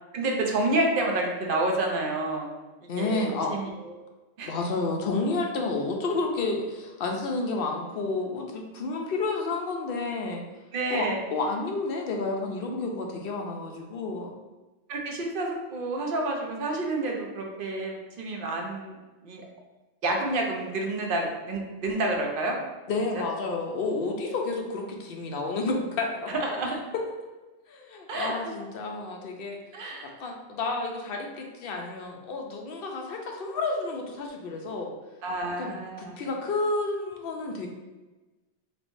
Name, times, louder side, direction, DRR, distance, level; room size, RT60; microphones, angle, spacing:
voice 1, 0.1-2.5 3.0-3.9 4.4-4.5 10.7-11.2 14.9-19.0 19.2-19.4 20.0-22.6 23.1-23.2 26.3-26.8 28.1-28.5 29.7-30.1 35.2-36.2, right 2 dB, 60° right, 1 dB, 0.7 m, -29 dB
voice 2, 2.9-3.5 4.4-10.4 10.9-14.3 22.9-26.3 27.7-34.9 35.6-37.7, left 3 dB, 65° left, 1 dB, 0.7 m, -30 dB
3.3 x 3.0 x 2.6 m, 1.2 s
omnidirectional pair, 1.1 m